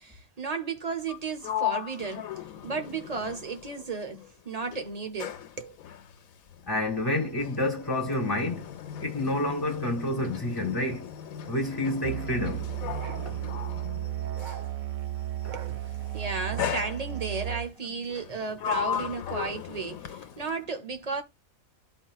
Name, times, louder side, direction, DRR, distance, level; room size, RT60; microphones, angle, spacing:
voice 1, 0.0-2.3 2.6-5.8 15.5-21.2, right 4 dB, 35° right, 0.8 m, -34 dB
Sliding door, 1.0-4.3 4.6-14.8 15.6-16.0 16.6-17.5 18.1-20.6, left 10 dB, 85° left, 1.1 m, -37 dB
voice 2, 6.7-8.7 9.0-11.1 11.5-12.7 13.3-13.4 15.4-15.5, left 1 dB, 15° left, 1.8 m, -29 dB
Musical instrument, 12.0-17.7, right 12 dB, 85° right, 0.4 m, -34 dB
13.0 x 4.4 x 2.3 m
omnidirectional pair, 1.5 m